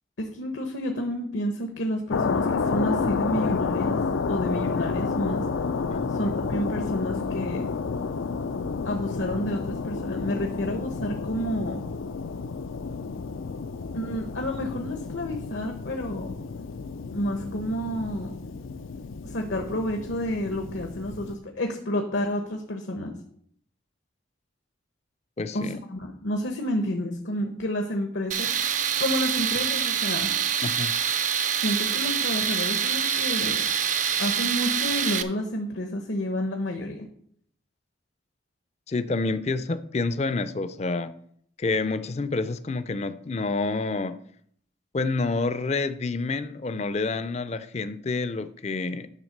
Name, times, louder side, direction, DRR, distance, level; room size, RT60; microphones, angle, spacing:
voice 1, 0.2-4.0 4.3-5.5 6.1-7.7 8.8-11.8 13.9-16.4 17.1-18.3 19.2-23.1 25.5-28.5 29.0-30.3 31.6-33.7 34.2-37.1, left 1 dB, 75° left, 3 dB, 0.9 m, -30 dB
sound 1, 2.1-21.4, left 4 dB, 90° left, 0.5 m, -30 dB
voice 2, 25.4-25.8 30.6-30.9 38.9-41.1 41.6-44.2 44.9-49.1, left 3 dB, 35° left, 13 dB, 0.4 m, -28 dB
Tools, 28.3-35.2, right 8 dB, 40° right, 0.5 m, -26 dB
10.0 x 3.6 x 6.5 m, 0.64 s
head